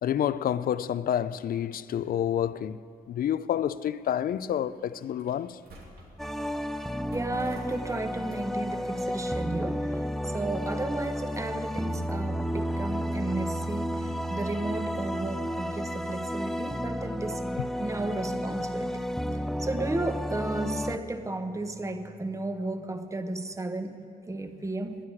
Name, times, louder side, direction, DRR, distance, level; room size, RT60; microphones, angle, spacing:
voice 1, 0.0-5.6, left 10 dB, 65° left, 0.4 m, -29 dB
sound 1, 2.0-11.1, right 1 dB, 90° right, 2.7 m, -55 dB
sound 2, 6.2-21.0, equal, ahead, 0.5 m, -32 dB
voice 2, 7.1-19.0 19.6-25.0, right 2 dB, 20° right, 1.0 m, -34 dB
12.5 x 10.5 x 9.9 m
cardioid pair, 105°, 16 cm